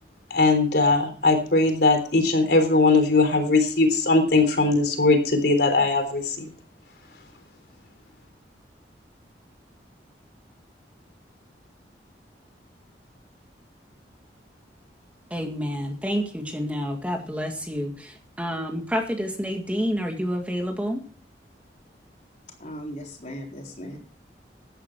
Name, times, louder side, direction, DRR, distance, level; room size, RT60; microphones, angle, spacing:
voice 1, 0.3-6.5, left 3 dB, 65° left, 6 dB, 3.6 m, -20 dB
voice 2, 15.3-21.0, equal, 10° right, 3 dB, 1.9 m, -29 dB
voice 3, 22.6-24.0, equal, 40° left, 1 dB, 4.0 m, -37 dB
16.0 x 11.0 x 4.6 m, 0.41 s
head